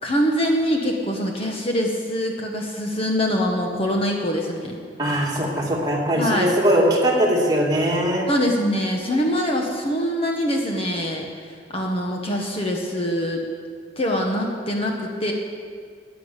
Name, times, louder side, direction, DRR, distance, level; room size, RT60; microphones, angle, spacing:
voice 1, 0.0-4.8 6.2-6.5 8.3-13.4 14.0-15.3, equal, 30° left, 1 dB, 1.3 m, -24 dB
voice 2, 5.0-8.3, equal, 20° right, -3 dB, 2.3 m, -20 dB
11.0 x 10.0 x 8.2 m, 2.1 s
head